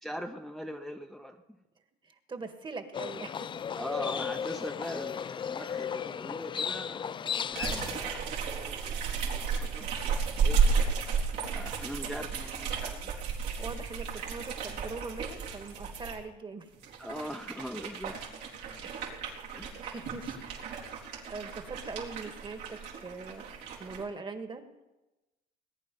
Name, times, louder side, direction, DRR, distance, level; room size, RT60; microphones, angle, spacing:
voice 1, 0.0-1.6 3.7-8.2 8.6-10.6 11.3-13.1 17.0-18.2 18.8-18.9 19.5-19.8, equal, ahead, 4 dB, 0.8 m, -42 dB
voice 2, 2.0-3.4 13.6-16.7 18.7-18.9 19.4-20.4 20.7-20.9 21.3-23.4 23.8-24.6, right 4 dB, 30° right, 7 dB, 1.7 m, -42 dB
Livestock farm animals working animals, 2.9-8.3, left 7 dB, 30° left, 0.4 m, -35 dB
sound 1, 7.5-16.2 16.7-24.0, right 5 dB, 80° right, 4.2 m, -33 dB
20.0 x 10.5 x 5.3 m, 1.0 s
cardioid pair, 110°, 17 cm